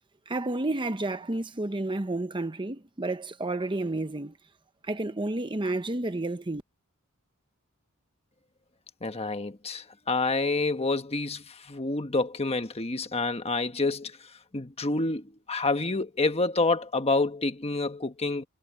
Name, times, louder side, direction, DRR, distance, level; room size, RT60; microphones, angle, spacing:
voice 1, 0.3-4.4 4.8-6.6, right 2 dB, 20° right, 0.9 m, -31 dB
voice 2, 9.0-18.5, left 3 dB, 25° left, 1.4 m, -28 dB
head